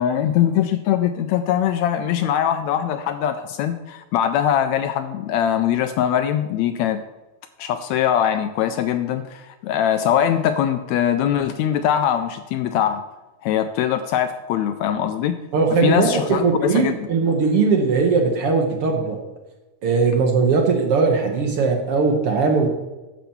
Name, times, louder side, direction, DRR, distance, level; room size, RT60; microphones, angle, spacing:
voice 1, 0.0-7.0 7.6-13.0 13.4-15.4 15.8-16.9, left 10 dB, 80° left, 9 dB, 1.7 m, -22 dB
voice 2, 15.5-19.2 19.8-22.7, right 4 dB, 60° right, 2 dB, 1.7 m, -19 dB
10.0 x 5.9 x 6.9 m, 1.1 s
omnidirectional pair, 3.5 m